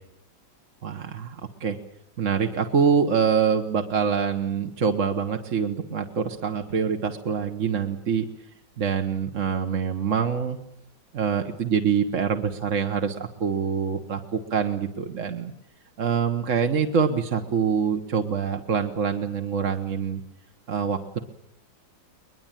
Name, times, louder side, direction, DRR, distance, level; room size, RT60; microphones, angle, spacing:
voice 1, 0.8-1.8 2.2-8.3 8.8-10.6 11.1-15.5 16.0-20.2 20.7-21.2, right 6 dB, 45° right, 5 dB, 1.4 m, -25 dB
22.0 x 22.0 x 9.0 m, 0.75 s
omnidirectional pair, 2.0 m